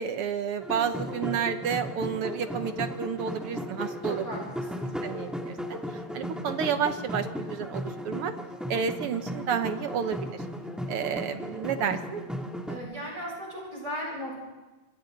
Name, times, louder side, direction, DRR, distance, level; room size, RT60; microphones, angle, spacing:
voice 1, 0.0-4.2 5.0-5.8 6.1-8.3 8.7-10.4 10.9-12.2, right 7 dB, 70° right, 9 dB, 1.4 m, -30 dB
sound 1, 0.6-12.8, equal, ahead, 2.0 m, -36 dB
voice 2, 4.0-4.7 12.7-14.4, equal, 30° right, -3 dB, 8.3 m, -36 dB
26.5 x 26.5 x 3.9 m, 1.2 s
omnidirectional pair, 3.5 m